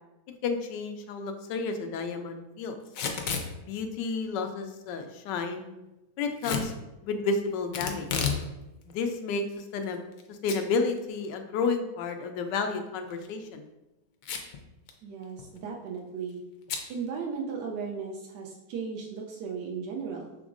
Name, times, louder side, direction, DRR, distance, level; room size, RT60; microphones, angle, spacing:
voice 1, 0.4-2.8 3.7-5.7 6.2-6.7 7.0-8.1 8.9-10.0 10.3-13.7, left 4 dB, 90° left, 6 dB, 1.2 m, -31 dB
Packing tape duct tape / Tearing, 2.9-3.5 6.4-6.7 7.7-8.4 8.8-8.9 9.6-10.2 10.5-10.6 11.0-11.1 13.0-13.3 14.2-14.6 14.9-15.0 15.2-15.6 16.7-16.9, left 6 dB, 65° left, 0.9 m, -31 dB
voice 2, 15.0-16.4 16.9-20.4, right 5 dB, 85° right, -1 dB, 1.3 m, -36 dB
6.0 x 3.5 x 2.5 m, 0.98 s
omnidirectional pair, 1.8 m